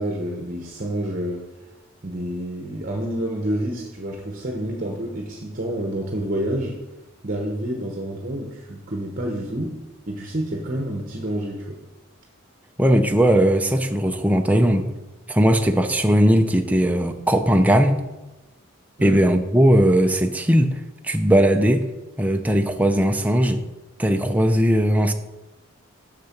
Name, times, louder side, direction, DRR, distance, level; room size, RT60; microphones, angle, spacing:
voice 1, 0.0-1.4 2.0-6.8 7.2-9.8 10.1-11.8 19.0-19.2, right 1 dB, 40° right, 0 dB, 1.0 m, -28 dB
voice 2, 12.8-14.9 15.3-18.0 19.0-21.9 22.2-23.6 24.0-25.1, equal, 5° right, 5 dB, 0.5 m, -18 dB
6.7 x 6.7 x 5.8 m, 1.1 s
head